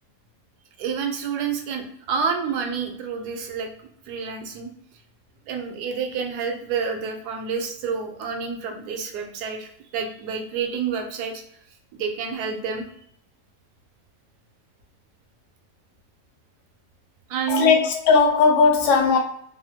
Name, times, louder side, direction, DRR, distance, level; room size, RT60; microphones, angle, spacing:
voice 1, 0.8-3.7 4.1-4.7 5.5-11.4 11.9-12.8 17.3-17.8, right 6 dB, 80° right, 1.1 m, -28 dB
voice 2, 17.5-19.2, left 5 dB, 65° left, 0.8 m, -17 dB
3.2 x 2.0 x 2.7 m
omnidirectional pair, 1.7 m